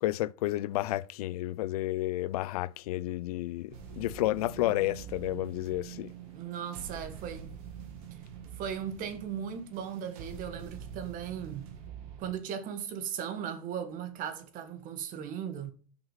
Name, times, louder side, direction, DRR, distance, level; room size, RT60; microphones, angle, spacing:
voice 1, 0.0-6.1, left 16 dB, 80° left, 0.4 m, -31 dB
sound 1, 3.7-12.3, right 7 dB, 70° right, 1.8 m, -45 dB
voice 2, 6.3-7.6 8.6-11.7 12.2-15.7, right 8 dB, 45° right, 1.4 m, -37 dB
5.9 x 5.3 x 5.6 m
supercardioid pair, 110°, 19 cm